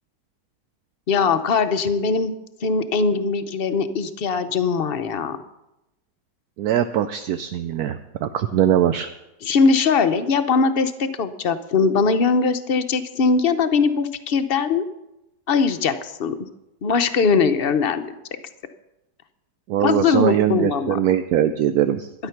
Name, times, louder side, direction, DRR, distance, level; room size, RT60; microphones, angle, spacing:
voice 1, 1.1-2.3 2.6-5.4 9.4-14.8 15.5-16.3 16.8-18.0 19.8-21.0, left 5 dB, 50° left, 10 dB, 0.7 m, -20 dB
voice 2, 6.6-9.1 19.7-22.1, right 10 dB, 70° right, 9 dB, 1.1 m, -21 dB
12.5 x 10.0 x 5.8 m, 0.92 s
omnidirectional pair, 1.8 m